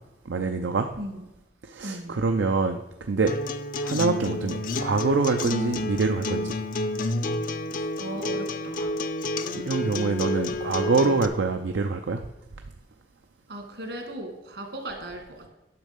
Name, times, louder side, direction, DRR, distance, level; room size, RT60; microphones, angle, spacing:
voice 1, 0.3-0.9 1.7-2.8 3.1-3.4 3.8-6.5 7.7-7.9 9.5-12.2, right 4 dB, 85° right, 5 dB, 0.6 m, -25 dB
voice 2, 1.8-2.2 8.0-9.0 13.5-15.5, right 1 dB, 70° right, 3 dB, 2.0 m, -37 dB
Acoustic guitar, 3.3-11.3, left 2 dB, 45° left, 0.5 m, -30 dB
9.7 x 6.4 x 5.2 m, 0.98 s
head